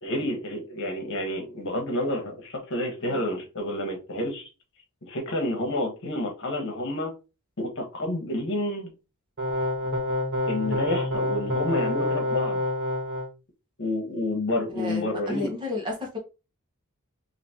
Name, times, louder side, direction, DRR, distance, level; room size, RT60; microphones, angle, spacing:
voice 1, 0.0-4.5 5.0-7.1 7.6-8.9 10.5-12.6 13.8-15.5, left 1 dB, 55° left, 1.3 m, -29 dB
sound 1, 9.4-13.3, left 1 dB, 50° right, 1.4 m, -27 dB
voice 2, 14.8-16.2, left 3 dB, 20° right, 1.2 m, -32 dB
4.0 x 2.9 x 2.9 m
head